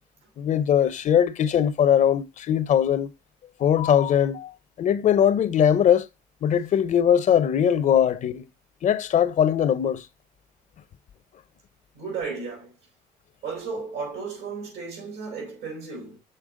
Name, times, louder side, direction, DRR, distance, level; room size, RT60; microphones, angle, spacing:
voice 1, 0.4-3.1 3.6-6.1 6.4-8.4 8.8-10.1, left 9 dB, 45° left, 0.6 m, -21 dB
voice 2, 11.9-12.7 13.4-16.2, right 4 dB, 80° right, 4.3 m, -34 dB
6.6 x 4.4 x 3.6 m
cardioid pair, 110°, 17 cm